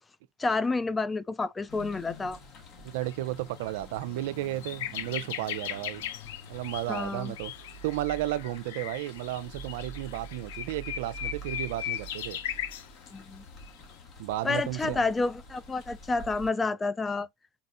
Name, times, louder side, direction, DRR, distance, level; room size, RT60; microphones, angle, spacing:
voice 1, 0.4-2.4 6.9-7.3 13.1-13.4 14.4-17.3, left 3 dB, 15° left, 0.4 m, -29 dB
sound 1, 1.7-16.5, right 1 dB, 45° left, 1.9 m, -47 dB
voice 2, 2.8-6.0 6.5-7.5 7.8-12.4 14.2-15.0, right 14 dB, 65° right, 0.4 m, -33 dB
sound 2, 3.0-3.1 3.6-3.7 4.0-12.9 13.6-13.8, left 11 dB, 70° left, 0.6 m, -38 dB
4.3 x 4.1 x 2.5 m
hypercardioid pair, 95°, 0 cm